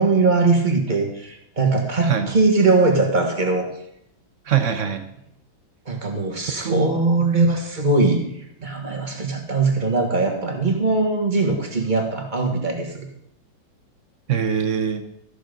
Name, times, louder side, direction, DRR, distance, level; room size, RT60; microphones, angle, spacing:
voice 1, 0.0-3.7 5.8-13.1, right 3 dB, 25° right, 2 dB, 1.5 m, -21 dB
voice 2, 4.5-5.1 6.6-6.9 7.2-7.3 14.3-15.0, right 7 dB, 55° right, 8 dB, 0.9 m, -22 dB
14.0 x 6.7 x 5.2 m, 0.76 s
omnidirectional pair, 2.1 m